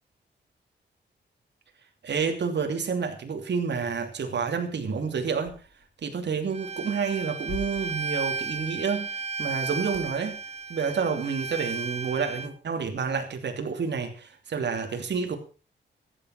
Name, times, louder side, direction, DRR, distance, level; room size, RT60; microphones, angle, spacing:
voice 1, 2.0-5.5 6.0-10.4 10.7-15.4, right 5 dB, 65° right, 4 dB, 2.8 m, -29 dB
sound 1, 5.4-12.5, left 5 dB, 85° left, 6.6 m, -48 dB
Bowed string instrument, 6.5-12.5, right 4 dB, 35° right, 1.0 m, -34 dB
14.0 x 9.4 x 6.1 m, 0.36 s
cardioid pair, 90°, 19 cm